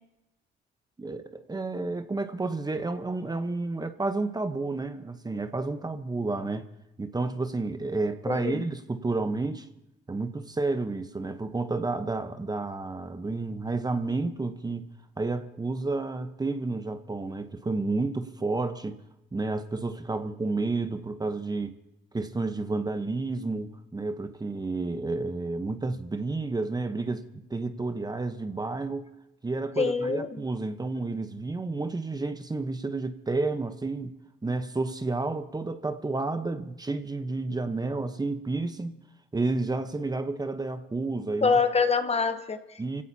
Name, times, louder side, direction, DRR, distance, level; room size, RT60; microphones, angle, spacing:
voice 1, 1.0-6.7 7.0-9.7 10.1-14.9 15.2-19.0 19.3-21.7 22.1-29.1 29.4-34.1 34.4-39.0 39.3-41.6 42.8-43.0, right 3 dB, 20° right, 1.0 m, -31 dB
voice 2, 8.3-8.6 29.8-30.3 41.4-42.6, left 5 dB, 30° left, 1.1 m, -25 dB
28.0 x 17.0 x 2.8 m
cardioid pair, 90°, 20 cm